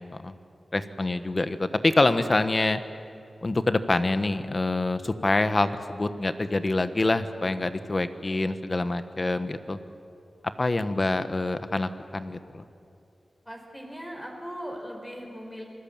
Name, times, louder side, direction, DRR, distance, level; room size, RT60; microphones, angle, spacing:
voice 1, 0.7-2.8 3.4-9.8 10.6-12.6, left 2 dB, 35° left, 11 dB, 1.2 m, -26 dB
voice 2, 13.4-15.6, equal, 5° left, 0 dB, 4.9 m, -39 dB
28.0 x 20.5 x 8.9 m, 2.6 s
wide cardioid pair, 100°, 0 cm